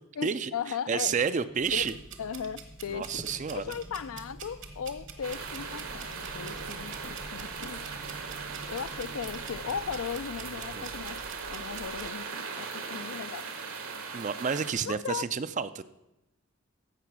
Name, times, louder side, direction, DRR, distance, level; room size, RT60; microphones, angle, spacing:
voice 1, 0.2-1.2 1.7-3.2 3.5-7.8 8.7-13.5 14.9-15.2, left 7 dB, 70° left, 0.4 m, -37 dB
voice 2, 0.9-1.9 2.9-3.7 10.7-10.9 14.1-15.8, right 6 dB, 35° right, 0.4 m, -30 dB
sound 1, 1.1-10.0, equal, 15° left, 0.6 m, -51 dB
sound 2, 1.6-12.1, right 4 dB, 55° right, 1.1 m, -47 dB
sound 3, 5.2-14.7, right 5 dB, 75° right, 1.5 m, -39 dB
15.0 x 5.9 x 6.1 m
head